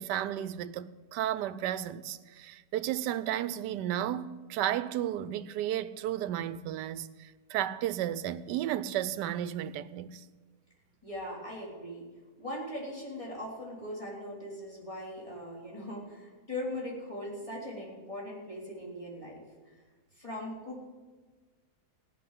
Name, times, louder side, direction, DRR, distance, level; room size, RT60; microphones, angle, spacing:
voice 1, 0.0-10.2, right 11 dB, 80° right, 1.2 m, -33 dB
voice 2, 11.0-12.1 12.4-19.4 20.2-20.9, left 1 dB, 20° left, 3.4 m, -40 dB
16.0 x 6.6 x 9.8 m
omnidirectional pair, 1.8 m